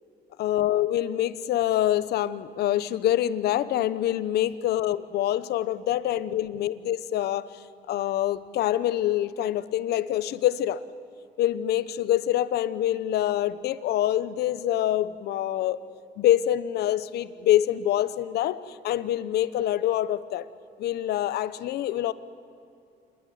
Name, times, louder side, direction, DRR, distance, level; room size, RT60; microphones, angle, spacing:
voice 1, 0.4-7.5 7.9-10.8 11.4-15.8 16.2-20.5 20.8-22.1, left 12 dB, 70° left, 16 dB, 1.0 m, -25 dB
28.0 x 20.0 x 9.3 m, 2.5 s
cardioid pair, 110°, 17 cm